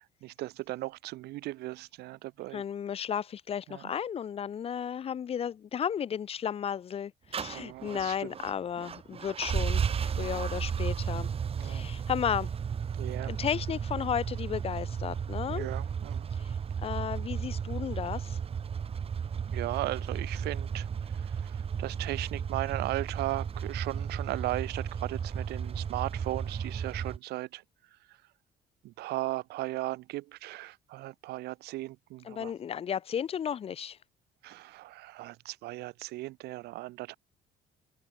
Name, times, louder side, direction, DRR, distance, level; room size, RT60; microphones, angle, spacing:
voice 1, 0.2-2.6 3.7-3.8 7.5-8.3 10.2-10.5 11.6-11.9 13.0-13.3 15.5-16.3 19.5-27.6 28.8-32.5 34.4-37.2, right 18 dB, 75° right, 0.5 m, -37 dB
voice 2, 2.5-11.3 11.6-12.5 13.3-15.7 16.4-16.5 16.8-18.4 32.2-34.0, left 8 dB, 35° left, 0.5 m, -34 dB
sound 1, 7.3-27.2, right 7 dB, 35° right, 1.1 m, -34 dB
cardioid pair, 110°, 17 cm